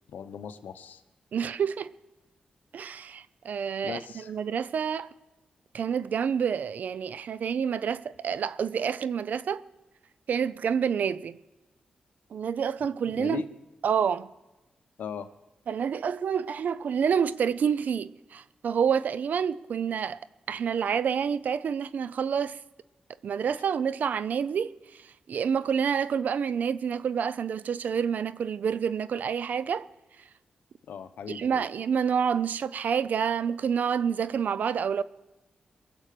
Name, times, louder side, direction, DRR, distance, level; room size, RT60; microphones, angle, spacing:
voice 1, 0.1-1.0 3.8-4.3 13.1-13.5 15.0-15.3 30.9-31.7, left 7 dB, 90° left, 0.9 m, -38 dB
voice 2, 1.3-1.9 2.7-5.1 5.7-9.6 10.3-11.4 12.3-13.4 13.8-14.3 15.7-20.2 20.5-22.6 23.2-29.9 31.3-35.0, right 7 dB, 75° right, 0.5 m, -28 dB
21.0 x 7.7 x 6.7 m
cardioid pair, 80°, 3 cm